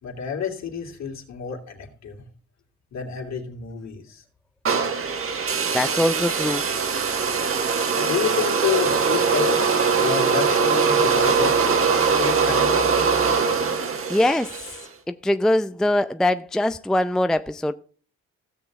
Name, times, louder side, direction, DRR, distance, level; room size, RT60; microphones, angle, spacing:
voice 1, 0.0-2.2 2.9-4.2 7.9-9.7 10.0-11.6 12.2-13.0, left 7 dB, 65° left, 2.9 m, -29 dB
sound 1, 4.6-14.8, right 5 dB, 45° right, 1.6 m, -21 dB
voice 2, 5.7-6.6 14.1-14.5 15.1-17.7, left 1 dB, ahead, 0.4 m, -22 dB
16.0 x 6.9 x 3.6 m
cardioid pair, 90°, 30 cm